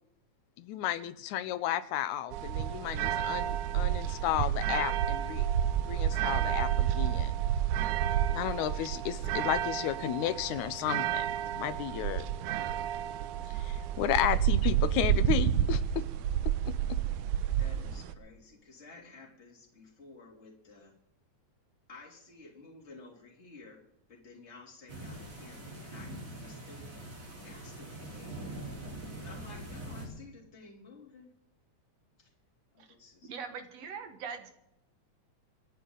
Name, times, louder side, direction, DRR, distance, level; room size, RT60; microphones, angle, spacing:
voice 1, 0.6-5.5 5.8-7.3 8.3-11.3 11.5-12.3 13.5-16.0 16.5-16.7, left 12 dB, 85° left, 14 dB, 2.2 m, -33 dB
sound 1, 2.3-18.1, right 11 dB, 85° right, 2.3 m, -30 dB
voice 2, 17.6-20.9 21.9-27.1 27.4-28.8 29.2-31.3 32.2-32.3 32.7-33.3, left 3 dB, 20° left, -1 dB, 3.2 m, -53 dB
sound 2, 24.9-30.1, right 1 dB, 40° right, 4.7 m, -43 dB
voice 3, 33.3-34.5, right 6 dB, 60° right, 7 dB, 2.5 m, -41 dB
26.0 x 10.0 x 3.9 m, 0.80 s
omnidirectional pair, 3.4 m